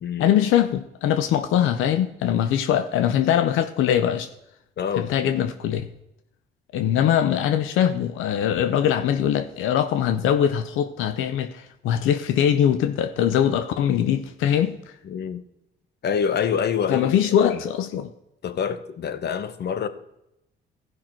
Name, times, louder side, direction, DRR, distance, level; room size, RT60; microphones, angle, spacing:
voice 1, 0.2-4.3 5.0-5.9 6.7-14.8 16.9-18.1, left 9 dB, 90° left, 0.7 m, -22 dB
voice 2, 4.8-5.3 15.0-15.4 16.0-17.1 17.4-17.6 18.4-19.9, left 7 dB, 55° left, 1.0 m, -26 dB
15.0 x 5.9 x 4.4 m
cardioid pair, 90°, 20 cm